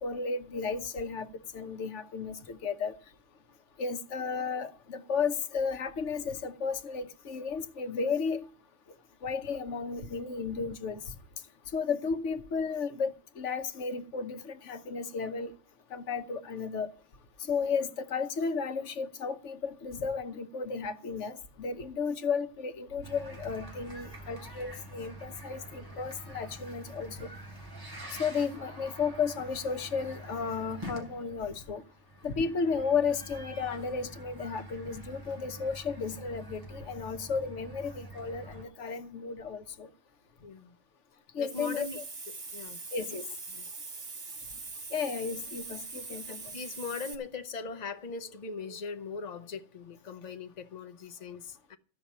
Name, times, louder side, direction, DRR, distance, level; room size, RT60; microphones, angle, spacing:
voice 1, 0.0-2.9 3.8-8.4 9.2-11.1 11.7-15.5 15.9-16.9 17.4-27.3 28.1-31.8 32.2-39.9 41.3-42.0 42.9-43.3 44.9-46.4, left 5 dB, 85° left, 1.2 m, -33 dB
sound 1, 23.0-38.6, right 1 dB, 20° right, 3.5 m, -46 dB
voice 2, 40.4-40.8 41.4-42.0 42.3-42.8 43.5-43.7 46.3-51.8, left 4 dB, 40° left, 0.9 m, -40 dB
Hiss, 41.4-47.2, right 3 dB, 65° right, 1.9 m, -42 dB
14.5 x 5.7 x 8.6 m
omnidirectional pair, 1.2 m